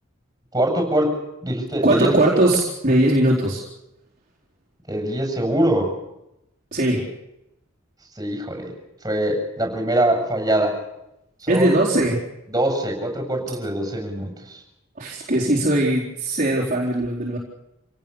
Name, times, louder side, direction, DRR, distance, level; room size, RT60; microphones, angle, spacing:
voice 1, 0.5-2.3 4.9-6.0 8.2-8.7 9.0-10.8 11.4-11.7 12.5-14.6, right 1 dB, 15° right, 3 dB, 7.8 m, -23 dB
voice 2, 1.8-3.6 6.7-7.1 11.5-12.2 15.0-17.4, right 1 dB, 40° right, -5 dB, 4.2 m, -20 dB
27.5 x 18.0 x 7.2 m, 0.86 s
head